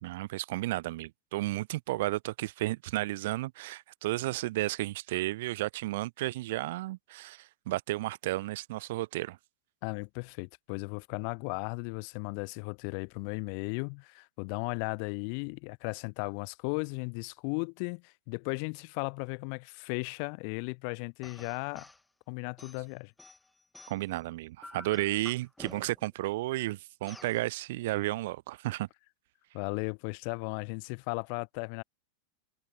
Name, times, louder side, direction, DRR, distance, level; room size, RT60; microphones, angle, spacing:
voice 1, 0.0-9.4 23.9-28.9, right 18 dB, 55° right, 0.4 m, -33 dB
voice 2, 9.8-21.9 22.3-23.1 29.5-31.8, left 40 dB or more, 45° left, 0.6 m, -36 dB
sound 1, 21.2-22.0 22.6-24.2 24.6-26.1 27.1-27.4, left 2 dB, 5° left, 0.8 m, -50 dB
figure-of-eight pair, 90°, 0 cm